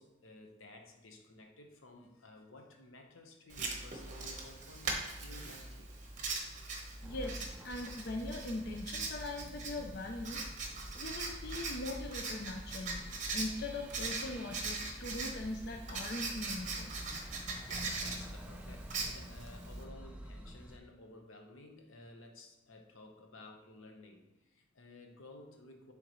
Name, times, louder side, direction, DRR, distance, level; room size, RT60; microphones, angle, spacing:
voice 1, 0.0-5.9 17.6-25.9, left 2 dB, 85° left, 3 dB, 1.1 m, -54 dB
Writing, 3.5-19.8, right 3 dB, 35° right, 1.0 m, -41 dB
voice 2, 7.0-10.5 11.0-13.0 13.3-16.9, left 2 dB, 50° left, 2 dB, 0.5 m, -41 dB
sound 1, 7.0-20.8, equal, 5° right, 0.4 m, -49 dB
10.5 x 3.8 x 3.1 m, 1.0 s
head